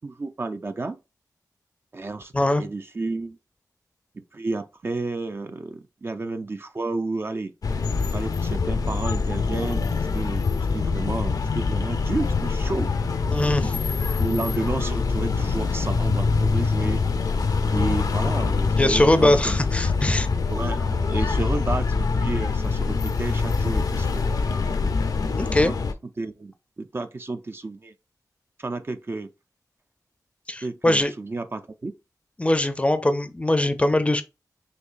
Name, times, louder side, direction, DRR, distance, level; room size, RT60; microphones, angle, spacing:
voice 1, 0.0-1.0 1.9-2.3 2.6-3.4 4.1-7.5 8.1-9.9 10.1-10.4 10.7-12.9 13.6-17.0 17.7-19.6 20.5-24.4 25.6-25.8 26.2-27.9 28.6-29.3 30.6-31.9, right 3 dB, 35° right, 0.4 m, -31 dB
sound 1, 7.6-25.9, left 4 dB, 65° left, 0.6 m, -24 dB
voice 2, 13.3-13.7 18.8-20.3 25.4-25.7 30.5-31.1 32.4-34.2, left 1 dB, 20° left, 0.5 m, -21 dB
6.6 x 2.7 x 2.5 m
wide cardioid pair, 105°, 7 cm